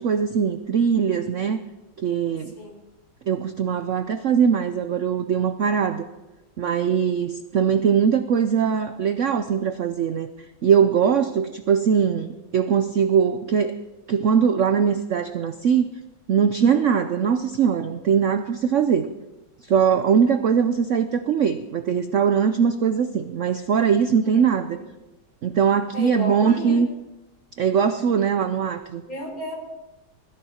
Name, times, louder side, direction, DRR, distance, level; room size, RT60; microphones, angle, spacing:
voice 1, 0.0-1.6 2.0-2.5 3.3-6.0 6.6-10.3 10.6-13.8 14.1-15.9 16.3-19.1 19.6-24.7 25.4-26.9 27.6-29.0, right 7 dB, 60° right, 9 dB, 0.8 m, -21 dB
voice 2, 16.7-17.0 24.3-24.9 25.9-26.8 29.1-29.6, left 1 dB, 50° left, -1 dB, 4.9 m, -33 dB
21.0 x 14.0 x 4.3 m, 1.0 s
omnidirectional pair, 2.0 m